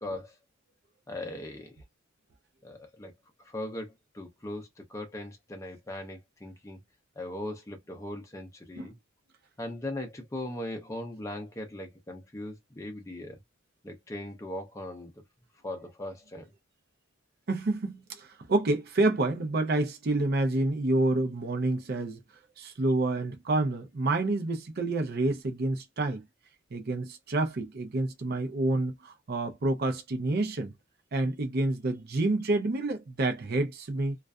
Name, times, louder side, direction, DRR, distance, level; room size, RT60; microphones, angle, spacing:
voice 1, 0.0-0.4 1.1-1.8 2.6-3.1 3.4-6.8 7.2-9.0 9.6-13.4 13.8-15.1 15.6-16.5, left 1 dB, 15° left, 0.5 m, -39 dB
voice 2, 17.5-22.2 22.6-26.2 26.7-30.7 31.1-34.2, right 2 dB, 50° right, 0.5 m, -28 dB
2.5 x 2.3 x 2.3 m
head